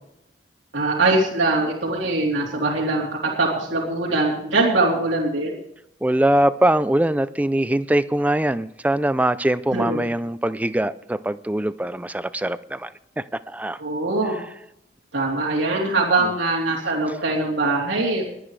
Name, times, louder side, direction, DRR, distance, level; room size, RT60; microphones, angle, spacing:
voice 1, 0.7-5.6 9.7-10.0 13.8-14.4 15.1-18.3, right 2 dB, 85° right, -5 dB, 3.4 m, -22 dB
voice 2, 6.0-12.9 13.2-13.8, right 1 dB, 10° right, 14 dB, 0.4 m, -22 dB
22.0 x 10.0 x 3.3 m, 0.76 s
head